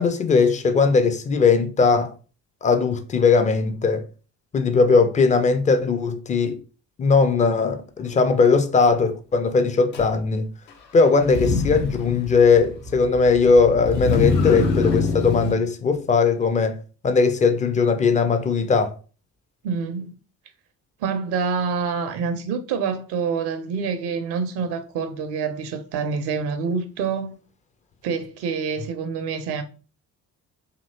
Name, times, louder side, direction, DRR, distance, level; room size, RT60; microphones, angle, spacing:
voice 1, 0.0-2.1 2.6-4.0 4.5-6.6 7.0-10.4 10.9-16.8 17.0-18.9, left 4 dB, 15° left, 0.3 m, -19 dB
Motor vehicle (road), 9.9-10.1 11.2-15.5, left 3 dB, 85° left, 0.7 m, -24 dB
voice 2, 19.6-20.1 21.0-27.4 28.0-29.6, right 5 dB, 55° right, 0.6 m, -26 dB
2.8 x 2.8 x 2.7 m
figure-of-eight pair, 45°, 48 cm